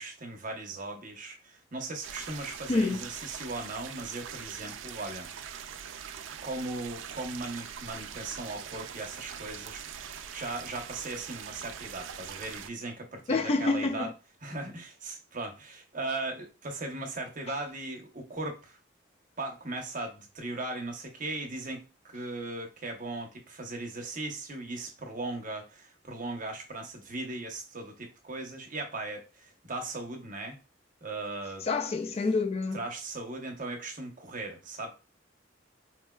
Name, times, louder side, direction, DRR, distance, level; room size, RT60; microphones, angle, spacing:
voice 1, 0.0-5.6 6.4-14.1 14.4-18.8 19.4-30.6 31.0-31.7 32.7-34.9, right 2 dB, 45° right, 0.8 m, -38 dB
sound 1, 2.0-12.7, right 8 dB, 85° right, 0.3 m, -42 dB
voice 2, 2.7-3.0 13.3-14.1 31.6-32.8, left 3 dB, 35° left, 0.4 m, -27 dB
4.3 x 2.2 x 2.2 m
head